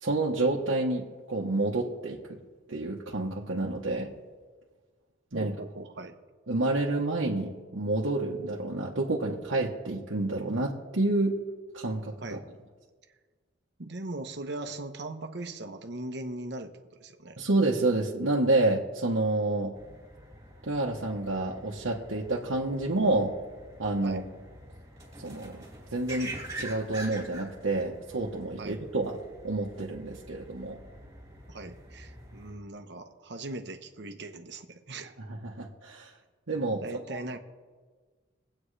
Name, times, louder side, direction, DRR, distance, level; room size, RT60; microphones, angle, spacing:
voice 1, 0.0-2.4 2.7-4.1 5.3-5.5 6.5-11.4 11.7-12.4 17.4-19.7 20.6-23.3 23.8-24.2 25.2-25.7 25.9-29.2 29.4-30.8 35.3-36.1 36.5-36.8, right 2 dB, 90° right, -4 dB, 1.2 m, -29 dB
voice 2, 5.3-6.1 12.2-12.4 13.8-16.7 17.0-17.4 24.0-24.2 28.6-28.8 31.5-35.1 36.7-37.4, right 2 dB, 60° right, 7 dB, 1.0 m, -39 dB
sound 1, 19.7-32.5, right 1 dB, 15° right, 3.0 m, -46 dB
22.5 x 8.7 x 3.3 m, 1.5 s
head